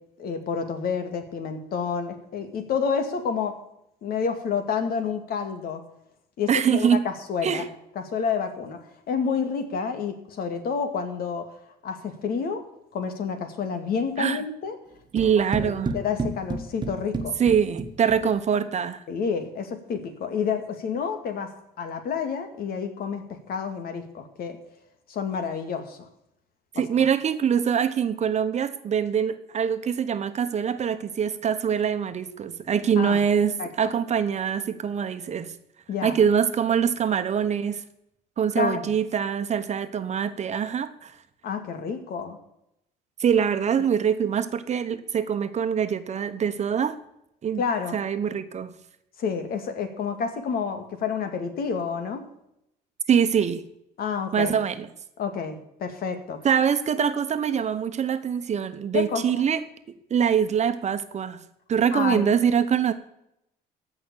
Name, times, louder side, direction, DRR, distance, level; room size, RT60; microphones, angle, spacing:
voice 1, 0.2-3.6 4.0-5.8 6.4-7.7 8.0-11.5 11.8-12.6 12.9-14.8 15.6-17.4 19.1-24.6 25.1-26.1 26.7-27.1 33.0-33.2 33.6-33.9 35.9-36.2 38.6-38.9 41.4-42.4 43.8-43.9 47.6-48.0 49.2-52.2 54.0-54.6 55.2-56.4 58.9-59.4 61.9-62.3, left 6 dB, 60° left, 7 dB, 2.3 m, -29 dB
voice 2, 6.5-7.0 7.4-7.7 14.2-14.4 15.1-15.9 17.4-19.0 26.7-35.5 36.0-37.8 38.4-41.1 43.2-47.0 47.4-47.6 47.9-48.7 53.1-53.6 54.3-54.9 56.4-59.6 60.1-61.4 61.7-62.9, right 7 dB, 40° right, 9 dB, 1.2 m, -24 dB
sound 1, 15.2-18.4, right 3 dB, 25° right, 1.5 m, -32 dB
15.0 x 6.1 x 8.6 m, 0.80 s
cardioid pair, 110°, 17 cm